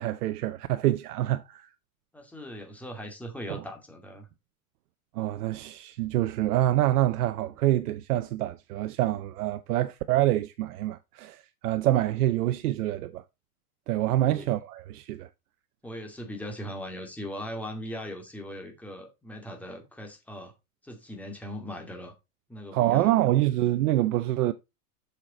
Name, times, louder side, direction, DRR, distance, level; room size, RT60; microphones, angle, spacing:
voice 1, 0.0-1.7 3.5-3.6 5.2-13.2 13.9-15.3 22.7-24.5, right 14 dB, 75° right, 0.8 m, -26 dB
voice 2, 2.1-4.3 14.2-14.5 15.8-20.5 20.8-22.1 22.5-23.1, equal, 5° left, 2.2 m, -39 dB
7.0 x 6.6 x 4.2 m
supercardioid pair, 130°, 46 cm